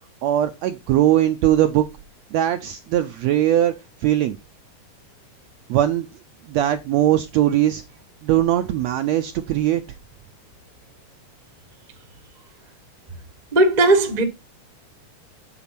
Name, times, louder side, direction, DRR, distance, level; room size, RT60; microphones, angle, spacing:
voice 1, 0.2-1.8 2.3-3.7 4.0-4.4 5.7-6.1 6.5-7.8 8.2-9.8, right 12 dB, 85° right, 1.5 m, -20 dB
voice 2, 13.5-14.2, right 2 dB, 55° right, 0.4 m, -16 dB
9.0 x 3.9 x 5.8 m
omnidirectional pair, 3.8 m